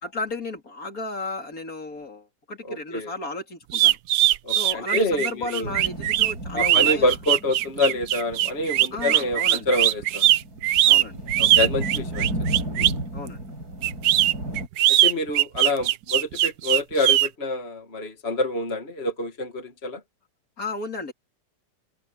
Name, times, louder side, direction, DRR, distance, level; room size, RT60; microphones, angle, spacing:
voice 1, 0.0-4.0 4.6-7.2 8.9-9.7 10.8-11.2 13.1-13.4 20.6-21.1, left 3 dB, 55° left, 3.6 m, -34 dB
voice 2, 2.7-3.1 4.4-5.7 6.5-10.2 11.4-12.3 12.7-12.9 14.9-20.0, left 2 dB, 35° left, 2.2 m, -27 dB
sound 1, 3.7-13.0 13.8-17.3, right 13 dB, 75° right, 1.2 m, -20 dB
sound 2, 5.6-14.7, right 1 dB, 60° right, 7.8 m, -34 dB
open air
omnidirectional pair, 1.8 m